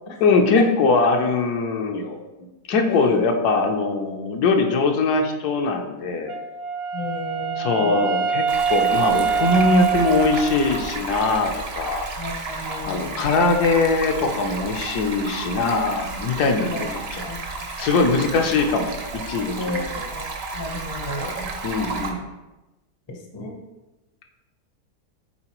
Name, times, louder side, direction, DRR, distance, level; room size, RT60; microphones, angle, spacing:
voice 1, 0.2-2.3 2.7-6.3 7.6-12.1 12.9-17.3 17.8-20.0 21.6-22.3, left 3 dB, 75° left, 3 dB, 1.2 m, -21 dB
voice 2, 2.9-3.2 6.9-8.1 12.2-13.3 16.6-16.9 17.3-17.4 18.0-18.1 19.6-21.5 23.1-23.6, left 1 dB, 30° left, 2 dB, 0.5 m, -33 dB
Wind instrument woodwind instrument, 6.3-11.1, right 6 dB, 75° right, 0.5 m, -24 dB
Stream, 8.5-22.1, right 3 dB, 50° right, 0.8 m, -32 dB
8.8 x 3.8 x 3.0 m, 1.1 s
omnidirectional pair, 1.8 m